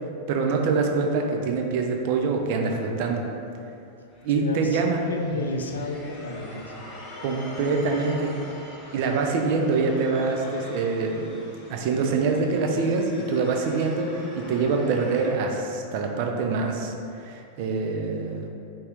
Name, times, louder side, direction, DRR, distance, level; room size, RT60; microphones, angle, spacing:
voice 1, 0.3-3.2 4.2-5.0 7.2-8.3 8.9-11.3 11.7-16.9 17.2-18.5, right 4 dB, 50° right, 2 dB, 0.4 m, -25 dB
sound 1, 4.1-15.3, left 1 dB, 30° left, 0.7 m, -44 dB
voice 2, 4.3-4.8 5.1-6.9, left 2 dB, 70° left, 3 dB, 0.3 m, -32 dB
3.3 x 2.7 x 3.4 m, 2.7 s
figure-of-eight pair, 90°, 0 cm